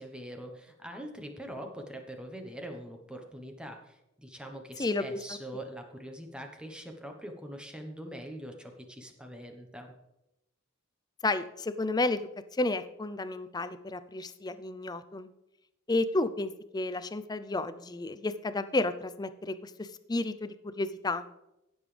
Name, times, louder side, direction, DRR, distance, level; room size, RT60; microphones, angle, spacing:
voice 1, 0.0-9.9, equal, 5° right, 4 dB, 1.0 m, -43 dB
voice 2, 4.8-5.2 11.2-15.3 15.9-21.3, left 2 dB, 20° left, 12 dB, 0.5 m, -32 dB
16.0 x 7.1 x 3.4 m, 0.89 s
head